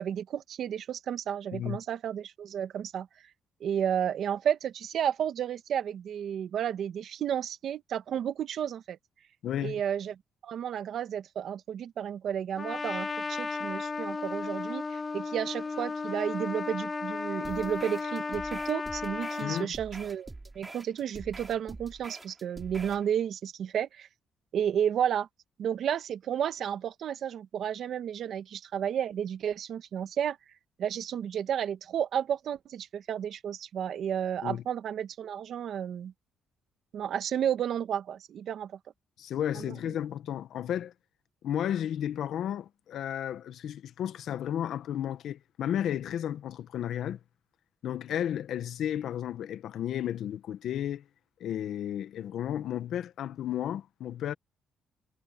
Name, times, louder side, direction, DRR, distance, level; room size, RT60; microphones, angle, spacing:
voice 1, 0.0-3.1 3.6-9.0 9.6-10.1 10.4-20.3 20.5-24.1 24.5-25.3 25.6-30.4 30.8-36.1 36.9-38.7 39.5-39.7, right 9 dB, 65° right, 1.9 m, -32 dB
voice 2, 9.4-9.8 19.4-19.7 34.4-34.6 39.2-40.9 41.4-47.2 47.8-51.0 51.4-54.3, left 10 dB, 75° left, 1.1 m, -33 dB
Trumpet, 12.6-19.7, left 4 dB, 30° left, 0.6 m, -34 dB
sound 1, 17.4-23.1, right 2 dB, 20° right, 3.7 m, -45 dB
cardioid pair, 90°, 0 cm